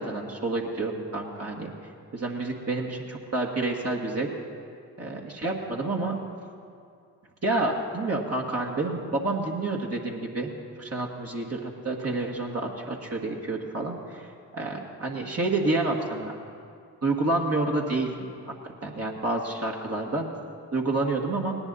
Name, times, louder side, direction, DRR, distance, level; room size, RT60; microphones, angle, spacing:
voice 1, 0.0-1.7 2.1-4.3 5.0-6.2 7.4-10.5 10.8-14.3 14.5-16.3 17.0-18.3 18.8-20.3 20.7-21.5, right 2 dB, 35° right, -1 dB, 1.8 m, -29 dB
18.5 x 10.5 x 4.1 m, 2.3 s
hypercardioid pair, 40°, 41 cm